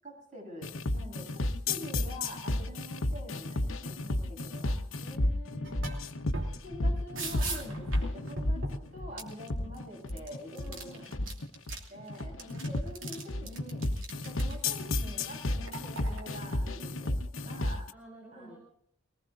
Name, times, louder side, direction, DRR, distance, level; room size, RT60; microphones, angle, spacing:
voice 1, 0.0-4.8 6.5-11.1 11.9-13.8 14.2-17.9 18.3-18.6, equal, 35° right, -1 dB, 7.9 m, -46 dB
sound 1, 0.6-17.9, left 1 dB, 80° left, 1.0 m, -32 dB
voice 2, 5.0-6.0 10.5-11.1 17.9-18.6, equal, 5° right, -2 dB, 5.4 m, -50 dB
sound 2, 5.6-6.1 6.3-9.8 10.1-11.8 12.1-14.6 15.1-16.4, right 2 dB, 80° right, 3.0 m, -40 dB
22.5 x 19.5 x 2.6 m, 0.65 s
head